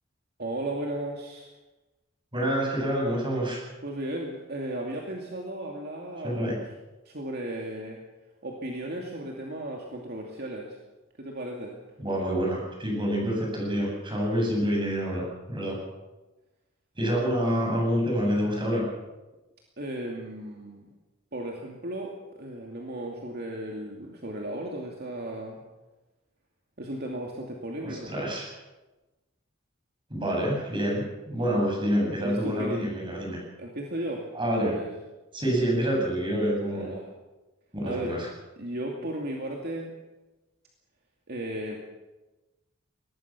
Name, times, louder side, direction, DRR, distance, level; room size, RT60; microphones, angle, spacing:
voice 1, 0.4-1.5 3.8-6.5 7.0-8.0 8.4-10.8 11.2-11.7 19.8-20.8 21.3-25.6 26.8-28.1 32.2-32.8 33.6-34.9 36.7-37.1 37.8-38.2 38.6-39.9 41.3-41.8, right 1 dB, 50° right, 0 dB, 2.6 m, -35 dB
voice 2, 2.3-3.6 6.2-6.6 12.0-15.8 17.0-18.8 27.8-28.5 30.1-33.4 34.3-34.7 35.3-36.9 37.7-38.3, equal, 25° right, -1 dB, 7.5 m, -27 dB
22.5 x 19.5 x 6.1 m, 1.1 s
head